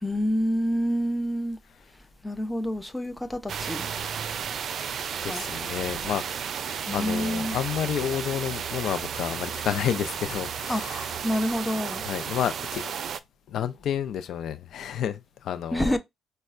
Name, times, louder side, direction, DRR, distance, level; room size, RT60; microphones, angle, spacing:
voice 1, 0.0-1.6 2.2-3.9 5.3-5.4 6.9-7.6 10.7-10.8 11.2-12.0 15.7-16.0, equal, 10° left, 0.7 m, -27 dB
sound 1, 3.5-13.2, right 7 dB, 60° right, 0.4 m, -33 dB
voice 2, 5.2-6.5 6.9-11.1 12.0-12.9 13.5-15.9, left 9 dB, 75° left, 0.5 m, -30 dB
5.2 x 2.2 x 2.5 m
cardioid pair, 90°, 0 cm